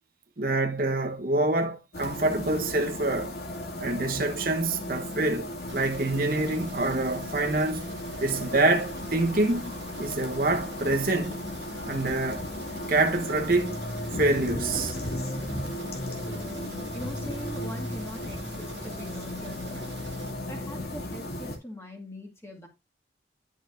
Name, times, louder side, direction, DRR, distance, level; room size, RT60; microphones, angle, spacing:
voice 1, 0.4-3.3 3.8-7.9 8.2-9.7 10.0-11.4 11.9-12.4 12.9-13.8 14.2-15.0, right 2 dB, 50° right, 1.1 m, -26 dB
sound 1, 1.9-21.6, left 1 dB, 60° left, 2.4 m, -35 dB
sound 2, 5.7-20.3, right 3 dB, 90° right, 1.6 m, -46 dB
voice 2, 16.1-19.9 20.5-22.7, left 1 dB, 15° left, 2.3 m, -42 dB
11.5 x 6.4 x 2.6 m
head